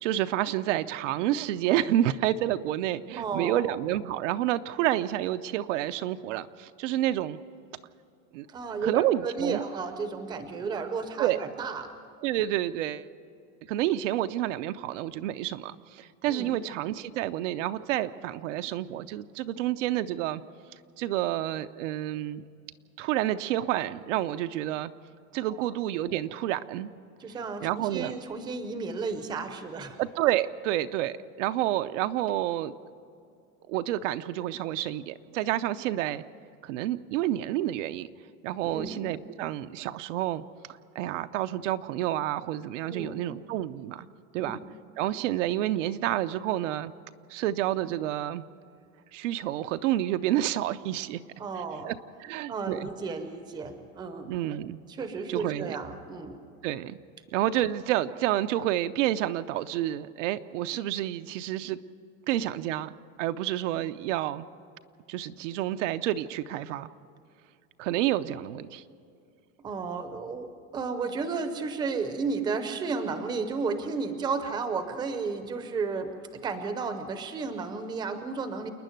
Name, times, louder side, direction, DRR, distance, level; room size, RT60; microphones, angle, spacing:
voice 1, 0.0-7.4 8.3-8.5 8.8-9.6 11.2-11.4 12.2-13.1 13.7-20.4 21.0-22.4 23.0-24.9 25.3-26.9 27.6-28.1 30.0-32.7 33.7-36.2 36.6-38.1 38.4-40.4 40.9-44.1 44.3-44.6 45.0-46.9 47.3-48.4 49.1-51.2 51.8-52.9 54.2-54.8 55.3-55.8 56.6-57.0 57.3-61.8 62.3-62.9 63.2-64.5 65.1-66.9 67.8-68.8, right 13 dB, 60° right, 10 dB, 0.7 m, -29 dB
voice 2, 3.1-3.6 8.5-11.9 16.2-16.5 25.5-25.7 27.2-30.0 38.6-39.0 42.8-43.2 44.4-44.6 51.4-51.9 52.5-54.3 54.9-56.4 69.6-78.7, right 4 dB, 10° right, 9 dB, 0.7 m, -33 dB
28.5 x 9.9 x 9.2 m, 2.5 s
supercardioid pair, 180°, 41 cm